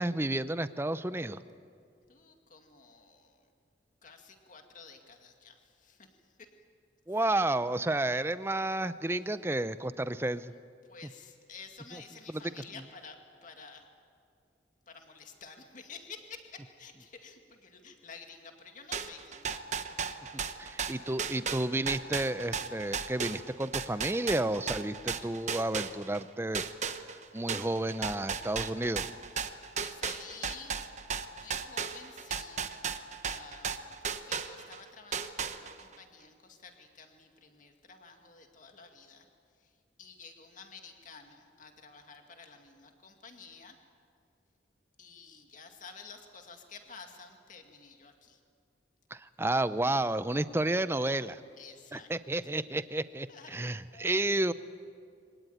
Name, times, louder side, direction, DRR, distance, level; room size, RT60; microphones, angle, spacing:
voice 1, 0.0-1.4 7.1-10.5 20.6-26.6 27.3-29.1 49.1-51.4 51.9-54.5, right 2 dB, 15° right, 13 dB, 0.6 m, -31 dB
voice 2, 2.1-3.4 4.0-6.5 10.8-13.9 14.9-20.0 21.0-21.2 29.8-30.7 31.3-32.7 33.3-39.3 39.6-39.7 40.0-43.8 45.0-48.4 51.6-52.1 52.4-52.5 53.3-54.3, left 5 dB, 45° left, 4 dB, 2.2 m, -51 dB
sound 1, 18.9-26.2 26.5-34.8 35.1-35.9, right 6 dB, 40° right, 1.0 m, -35 dB
25.0 x 18.0 x 9.3 m, 2.2 s
head